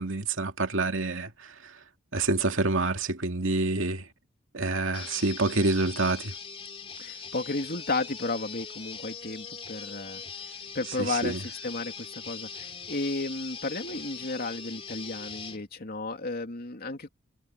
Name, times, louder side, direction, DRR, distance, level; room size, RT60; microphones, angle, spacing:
voice 1, 0.0-1.7 2.1-4.1 4.5-6.3 11.0-11.4, right 2 dB, 80° right, 2.5 m, -27 dB
sound 1, 4.9-15.6, left 6 dB, 30° left, 3.1 m, -41 dB
voice 2, 7.0-10.2 10.5-17.1, left 3 dB, 50° left, 2.9 m, -33 dB
head